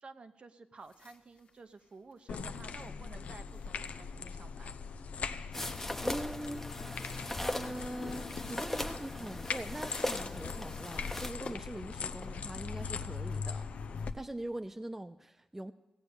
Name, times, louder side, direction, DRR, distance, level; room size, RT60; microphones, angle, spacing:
voice 1, 0.0-4.7, right 3 dB, 50° right, 9 dB, 0.8 m, -52 dB
sound 1, 0.8-14.3, left 3 dB, 60° left, 1.6 m, -57 dB
sound 2, 2.3-14.1, left 5 dB, 75° left, 0.6 m, -40 dB
sound 3, 5.5-11.3, left 1 dB, 15° left, 0.9 m, -39 dB
voice 2, 6.0-6.7 7.4-13.7 14.0-15.7, right 1 dB, 15° right, 9 dB, 0.4 m, -42 dB
16.0 x 8.3 x 6.7 m, 1.0 s
cardioid pair, 85°, 2 cm